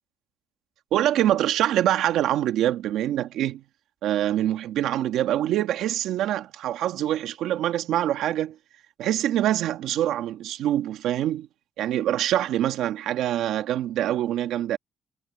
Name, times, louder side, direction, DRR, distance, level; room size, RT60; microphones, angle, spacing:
voice 1, 0.9-3.6 4.0-8.6 9.0-11.5 11.8-14.8, right 12 dB, 85° right, 1.7 m, -25 dB
cardioid pair, 90°, 0 cm